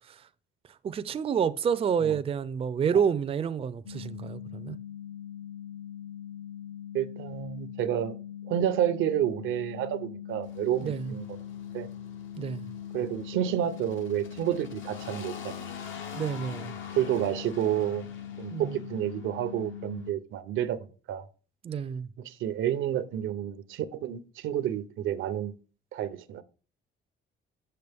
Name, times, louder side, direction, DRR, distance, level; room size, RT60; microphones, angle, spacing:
voice 1, 0.8-4.8 10.8-11.1 12.4-12.7 16.1-16.7 18.5-18.9 21.6-22.1, right 7 dB, 30° right, 0.4 m, -29 dB
sound 1, 3.9-20.1, left 10 dB, 60° left, 0.8 m, -42 dB
voice 2, 6.9-8.2 8.5-11.2 11.7-11.9 12.9-15.7 16.9-18.1 18.4-21.3 22.2-25.5 25.9-26.4, right 11 dB, 90° right, 0.7 m, -30 dB
sound 2, 10.4-20.1, left 6 dB, 80° left, 1.2 m, -46 dB
6.7 x 6.4 x 3.4 m
cardioid pair, 115°, 20 cm